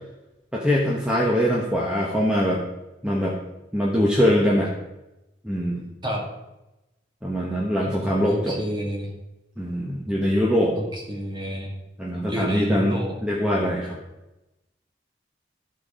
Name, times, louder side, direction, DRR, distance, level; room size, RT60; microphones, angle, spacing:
voice 1, 0.5-2.6 3.0-3.4 3.7-4.7 5.4-5.8 7.2-8.6 9.6-10.8 12.0-14.0, equal, 5° right, -3 dB, 1.1 m, -23 dB
voice 2, 8.2-9.1 10.7-11.7 12.3-13.1, equal, 25° right, 0 dB, 2.2 m, -29 dB
14.0 x 4.6 x 5.1 m, 0.96 s
head